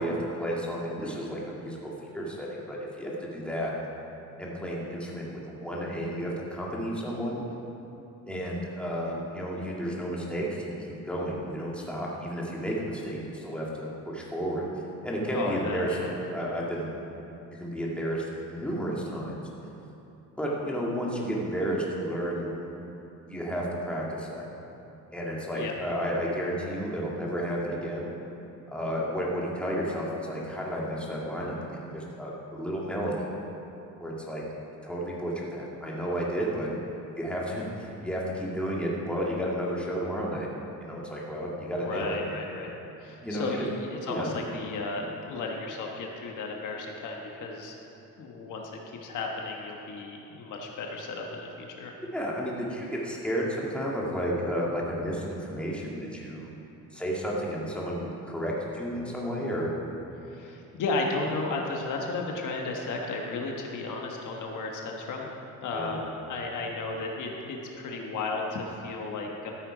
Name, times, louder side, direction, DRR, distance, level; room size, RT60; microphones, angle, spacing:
voice 1, 0.0-1.8 2.1-3.7 4.4-7.4 8.3-10.7 11.1-14.6 15.0-15.9 16.3-16.9 17.6-19.4 20.4-22.5 23.3-24.5 25.1-28.1 28.7-33.3 34.0-34.4 34.8-36.7 37.2-40.5 40.8-42.2 43.2-43.7 44.1-44.3 52.1-56.5 56.9-59.7 65.7-66.0, equal, 5° left, -4 dB, 2.0 m, -32 dB
voice 2, 15.3-16.1 25.5-25.7 41.7-42.7 43.0-47.7 48.2-48.7 49.0-51.9 60.3-65.3 65.6-69.5, left 3 dB, 65° left, 0 dB, 1.4 m, -34 dB
13.5 x 7.8 x 5.0 m, 2.9 s
cardioid pair, 120°, 33 cm